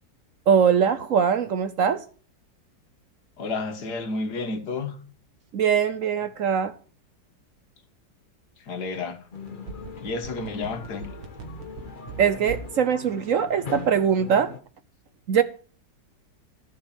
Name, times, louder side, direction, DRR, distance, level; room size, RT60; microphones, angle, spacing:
voice 1, 0.5-2.0 5.5-6.7 12.2-14.5 15.3-15.4, right 7 dB, 60° right, 0.9 m, -22 dB
voice 2, 3.4-5.0 8.6-9.2 10.0-11.1, left 3 dB, 60° left, 1.9 m, -31 dB
sound 1, 9.3-14.6, left 5 dB, 40° left, 0.8 m, -40 dB
sound 2, 9.4-12.8 13.1-13.2, right 7 dB, 85° right, 2.1 m, -39 dB
14.5 x 5.3 x 7.3 m
omnidirectional pair, 2.0 m